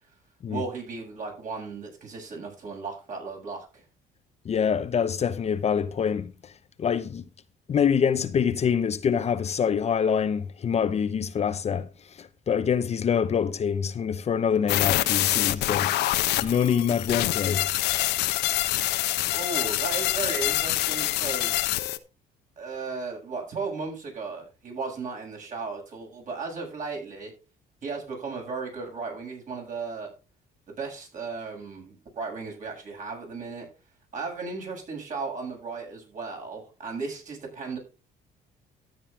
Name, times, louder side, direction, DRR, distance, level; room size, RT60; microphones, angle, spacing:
voice 1, 0.5-3.8 19.3-21.7 22.6-27.3 27.8-30.1 30.7-33.7 34.1-37.8, right 4 dB, 50° right, 7.5 m, -35 dB
voice 2, 4.4-6.3 6.8-7.2 7.7-11.9 12.2-16.0 16.4-17.7, left 7 dB, 40° left, 0.9 m, -25 dB
sound 1, 14.7-22.0, left 15 dB, 80° left, 1.0 m, -26 dB
12.5 x 9.1 x 3.6 m
cardioid pair, 110°, 17 cm